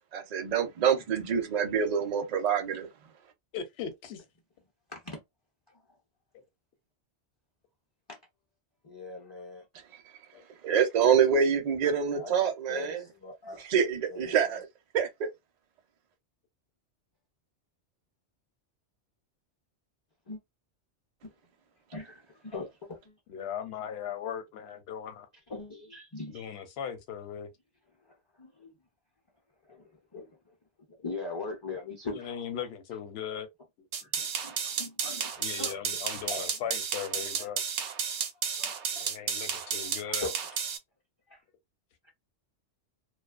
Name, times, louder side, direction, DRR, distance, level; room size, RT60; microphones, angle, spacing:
voice 1, 0.1-2.9 10.6-13.0 13.6-14.7 14.9-15.3, right 7 dB, 50° right, 0.5 m, -26 dB
voice 2, 3.5-4.2 10.3-10.4 23.3-25.3 26.3-27.5 32.1-33.5 33.8-33.9 34.2-34.3 35.4-37.6 39.0-40.3, left 8 dB, 65° left, 0.8 m, -38 dB
voice 3, 4.9-5.2 8.1-8.2 8.8-9.6 12.1-12.3 12.7-13.6 14.1-14.6 20.3-20.4 21.2-21.3 21.9-23.2 25.5-26.5 28.4-28.7 29.7-30.3 31.0-32.3 34.0-36.0 36.3-36.7 37.4-37.5 38.5-39.2 40.2-40.3 41.3-41.4, left 3 dB, 35° left, 0.4 m, -41 dB
sound 1, 33.9-40.8, right 7 dB, 75° right, 0.9 m, -32 dB
2.4 x 2.2 x 2.4 m
omnidirectional pair, 1.2 m